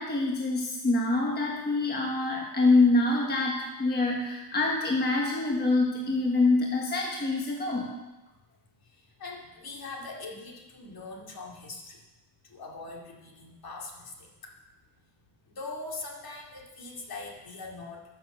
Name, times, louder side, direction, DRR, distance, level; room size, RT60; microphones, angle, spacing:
voice 1, 0.0-7.9, left 2 dB, 20° left, -1 dB, 1.3 m, -25 dB
voice 2, 9.2-12.0 12.5-14.5 15.5-18.0, left 3 dB, 50° left, -1 dB, 2.4 m, -41 dB
13.5 x 6.7 x 6.7 m, 1.1 s
wide cardioid pair, 170°, 45 cm